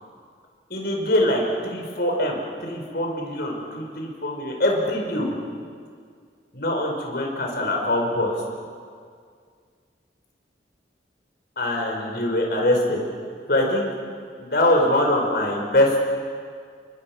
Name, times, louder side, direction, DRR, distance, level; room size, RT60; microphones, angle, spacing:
voice 1, 0.7-5.4 6.5-8.4 11.6-13.0 13.5-13.9 14.4-16.0, left 1 dB, 60° left, 0 dB, 5.4 m, -23 dB
29.5 x 23.5 x 6.3 m, 2.1 s
head